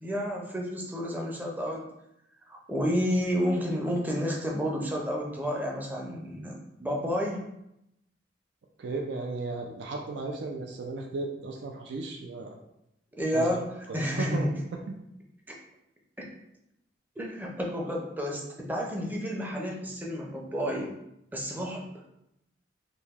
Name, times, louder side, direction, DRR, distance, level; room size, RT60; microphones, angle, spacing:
voice 1, 0.0-1.8 2.5-7.5 13.2-13.6 13.9-14.5 17.2-20.9 21.3-21.8, equal, 10° right, -1 dB, 0.5 m, -30 dB
voice 2, 8.8-12.6 13.3-13.5 13.9-14.4 14.7-15.0, right 3 dB, 75° right, 1 dB, 0.4 m, -35 dB
3.0 x 2.7 x 3.5 m, 0.81 s
head